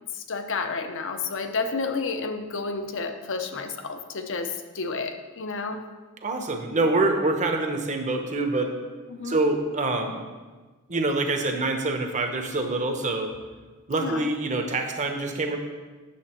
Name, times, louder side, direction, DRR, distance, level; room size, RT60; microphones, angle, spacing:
voice 1, 0.1-5.8 9.1-9.4 14.0-14.3, left 4 dB, 60° left, 7 dB, 0.7 m, -31 dB
voice 2, 6.2-8.7 9.2-10.2 10.9-13.3 13.9-15.6, right 2 dB, 35° right, 4 dB, 1.0 m, -25 dB
9.2 x 7.1 x 4.4 m, 1.3 s
head